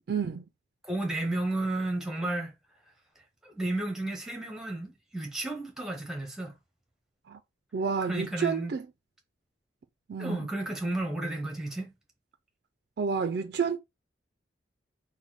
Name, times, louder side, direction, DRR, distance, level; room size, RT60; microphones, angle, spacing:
voice 1, 0.1-0.5 7.3-7.4 7.7-8.8 10.1-10.4 13.0-13.8, right 6 dB, 55° right, 0.3 m, -29 dB
voice 2, 0.8-2.5 3.4-6.5 8.1-8.7 10.2-11.9, right 2 dB, 5° right, 0.8 m, -32 dB
4.1 x 2.1 x 4.4 m
head